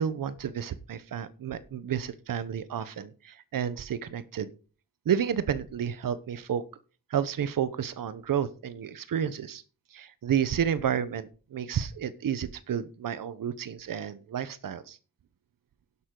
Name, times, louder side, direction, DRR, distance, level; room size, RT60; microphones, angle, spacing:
voice 1, 0.0-4.5 5.1-6.6 7.1-9.6 9.9-15.0, right 8 dB, 80° right, 14 dB, 1.0 m, -31 dB
11.5 x 11.0 x 3.9 m, 0.36 s
wide cardioid pair, 170°, 33 cm